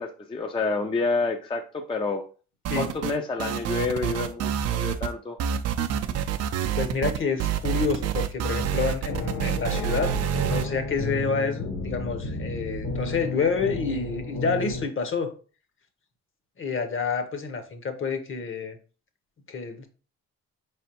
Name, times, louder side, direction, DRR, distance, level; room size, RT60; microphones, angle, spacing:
voice 1, 0.0-2.2 2.8-5.4, left 3 dB, 15° left, 0.4 m, -28 dB
sound 1, 2.6-3.1 3.4-5.1 5.4-10.6, right 9 dB, 55° right, 0.4 m, -27 dB
voice 2, 6.7-10.2 10.4-15.3 16.6-18.8 19.5-19.9, left 5 dB, 45° left, 0.8 m, -28 dB
sound 2, 9.1-14.8, left 3 dB, 80° left, 1.9 m, -33 dB
4.4 x 3.3 x 2.8 m
cardioid pair, 90°, 30 cm